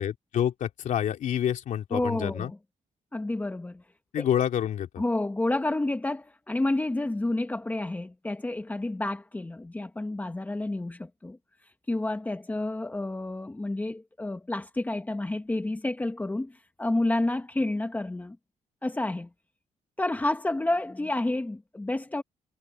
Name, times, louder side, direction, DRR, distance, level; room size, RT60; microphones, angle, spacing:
voice 1, 0.0-2.5 4.1-5.0, left 10 dB, 75° left, 3.2 m, -28 dB
voice 2, 1.9-2.6 3.1-3.8 4.2-4.3 5.0-11.4 11.9-18.4 18.8-19.3 20.0-22.2, left 2 dB, 10° left, 1.2 m, -30 dB
wide cardioid pair, 150°, 13 cm